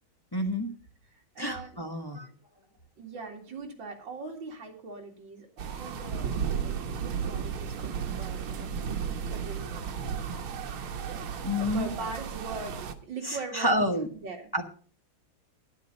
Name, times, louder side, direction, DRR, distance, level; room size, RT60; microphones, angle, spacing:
voice 1, 0.3-0.7 1.4-2.3 7.8-8.0 11.4-11.9 13.2-14.1 14.5-14.6, left 1 dB, 15° left, 3 dB, 0.9 m, -29 dB
voice 2, 1.1-1.9 3.0-9.8 11.6-13.8 14.2-14.5, right 3 dB, 60° right, 2 dB, 3.1 m, -41 dB
sound 1, 5.6-12.9, right 7 dB, 80° right, 2.0 m, -34 dB
11.5 x 10.5 x 5.2 m, 0.41 s
omnidirectional pair, 2.3 m